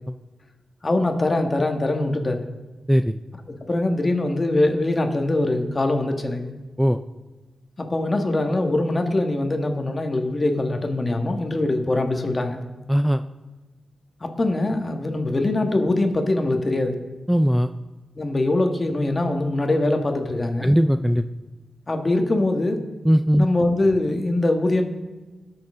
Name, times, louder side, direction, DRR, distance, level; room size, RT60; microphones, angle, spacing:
voice 1, 0.8-2.5 3.6-6.5 7.8-12.6 14.2-17.0 18.2-20.7 21.9-22.8 23.4-24.8, left 2 dB, 35° left, 5 dB, 1.6 m, -22 dB
voice 2, 12.9-13.2 17.3-17.7 20.6-21.2 23.0-23.5, equal, 5° right, 10 dB, 0.4 m, -18 dB
18.0 x 6.5 x 3.7 m, 1.2 s
cardioid pair, 65°, 0 cm